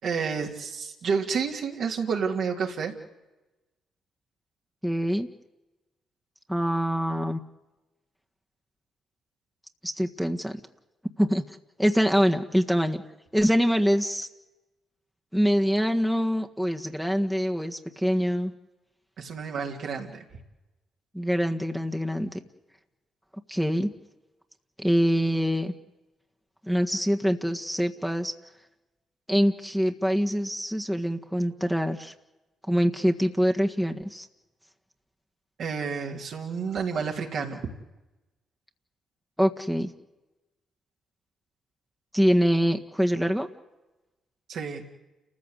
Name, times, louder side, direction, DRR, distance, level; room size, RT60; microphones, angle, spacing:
voice 1, 0.0-2.9 19.2-20.2 35.6-37.6 44.5-44.8, right 6 dB, 70° right, 0 dB, 3.3 m, -30 dB
voice 2, 4.8-5.3 6.5-7.4 9.8-10.6 11.2-11.4 11.8-13.0 13.3-14.3 15.3-18.5 21.1-22.3 23.5-23.9 24.8-25.7 26.7-28.3 29.3-32.1 32.7-34.3 39.4-39.9 42.1-43.5, equal, ahead, 3 dB, 1.7 m, -24 dB
30.0 x 14.5 x 8.3 m, 1.0 s
supercardioid pair, 55°, 0 cm